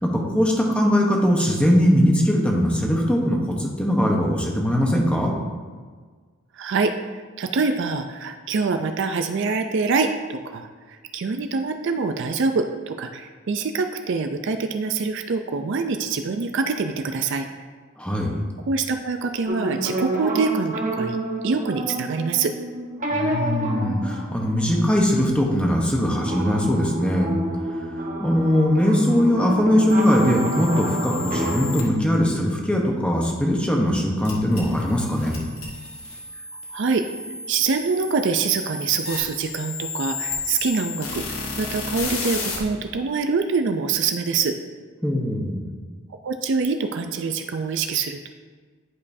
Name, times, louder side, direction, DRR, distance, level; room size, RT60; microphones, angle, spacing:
voice 1, 0.0-5.3 18.0-18.3 23.1-27.3 28.2-35.4 45.0-45.6, equal, 5° left, -1 dB, 1.0 m, -20 dB
voice 2, 6.5-17.5 18.7-21.2 21.4-22.5 36.7-37.0 37.5-41.2 41.6-44.6 46.1-48.3, right 4 dB, 60° right, 7 dB, 0.4 m, -25 dB
sound 1, 19.5-25.5 26.2-31.9, right 1 dB, 40° right, 1.0 m, -29 dB
sound 2, 29.9-31.8 34.2-42.6, left 4 dB, 75° left, 1.4 m, -33 dB
10.5 x 5.2 x 2.7 m, 1.5 s
head